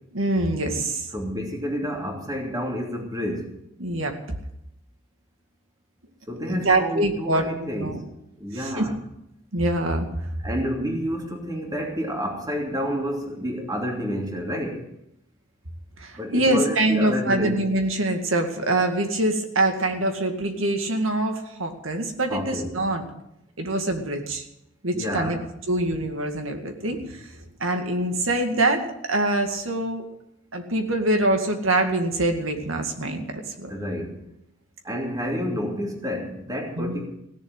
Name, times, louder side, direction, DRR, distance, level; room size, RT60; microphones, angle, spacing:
voice 1, 0.1-1.1 3.8-4.2 6.5-8.0 8.6-8.9 9.5-10.1 16.0-23.0 23.6-24.4 24.8-25.4 25.7-27.3 27.6-30.1 30.5-33.2 33.6-33.7 36.8-37.0, right 1 dB, 85° right, 5 dB, 2.1 m, -24 dB
voice 2, 1.1-3.5 6.3-8.0 8.4-8.9 10.4-14.8 16.2-17.6 22.3-22.7 24.9-25.4 33.7-34.2 34.8-37.1, equal, 20° right, 0 dB, 2.9 m, -29 dB
17.0 x 7.2 x 9.1 m, 0.81 s
head